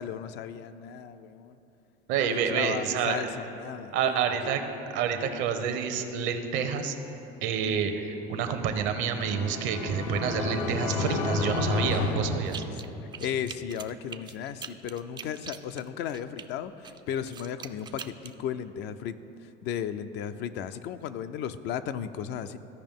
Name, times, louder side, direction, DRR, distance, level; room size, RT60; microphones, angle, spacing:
voice 1, 0.0-1.6 2.2-4.2 13.2-19.2 19.4-22.6, left 9 dB, 60° left, 11 dB, 0.4 m, -35 dB
voice 2, 2.1-3.3 3.9-4.6 4.9-6.9 7.4-12.6, right 7 dB, 70° right, 7 dB, 0.8 m, -28 dB
sound 1, 8.7-13.2, left 2 dB, 85° left, 0.9 m, -31 dB
sound 2, 12.4-12.9 13.1-16.5 16.8-18.3, right 7 dB, 20° right, 0.3 m, -42 dB
14.5 x 5.1 x 3.6 m, 3.0 s
supercardioid pair, 110°, 20 cm